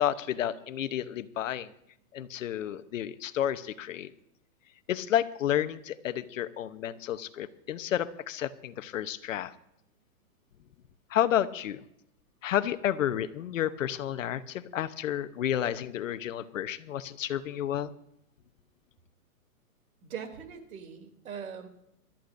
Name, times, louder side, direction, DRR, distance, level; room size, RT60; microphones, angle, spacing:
voice 1, 0.0-1.7 2.1-4.1 4.9-9.5 11.1-11.8 12.4-17.9, left 11 dB, 55° left, 11 dB, 0.9 m, -31 dB
voice 2, 20.0-21.7, right 7 dB, 65° right, 4 dB, 3.1 m, -41 dB
25.5 x 13.5 x 2.6 m, 0.77 s
hypercardioid pair, 155°, 46 cm